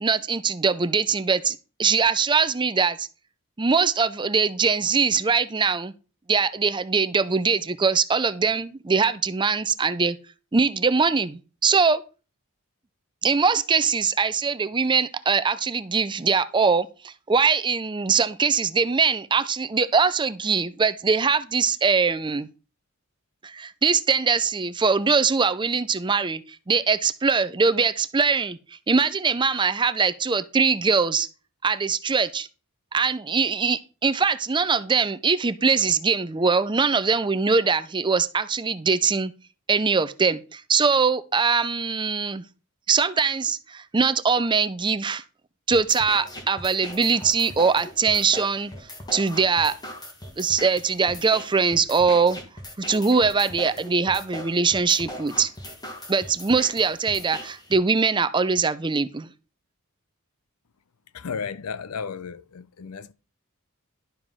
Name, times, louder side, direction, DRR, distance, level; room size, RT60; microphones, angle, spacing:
voice 1, 0.0-3.1 3.6-5.9 6.3-10.2 10.5-12.0 13.2-22.5 23.4-28.6 28.9-31.3 31.6-32.5 32.9-39.3 39.7-42.4 42.9-45.2 45.7-48.7 49.1-49.7 50.4-52.4 52.8-55.5 56.1-59.3, right 5 dB, 20° right, 0.5 m, -22 dB
sound 1, 45.7-57.7, equal, 20° left, 1.7 m, -39 dB
voice 2, 61.1-63.1, left 6 dB, 80° left, 0.6 m, -34 dB
11.5 x 4.9 x 5.6 m
head